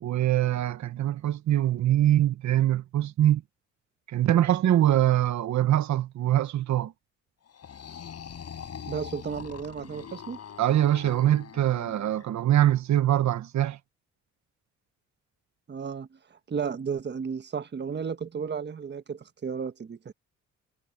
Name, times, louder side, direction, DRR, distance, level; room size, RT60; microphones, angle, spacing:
voice 1, 0.0-3.4 4.1-6.9 10.6-13.8, right 12 dB, 70° right, 1.4 m, -23 dB
sound 1, 7.5-12.3, left 8 dB, 55° left, 7.3 m, -43 dB
voice 2, 8.9-10.4 15.7-16.1 16.5-20.1, right 6 dB, 35° right, 1.4 m, -33 dB
cardioid pair, 90°, 30 cm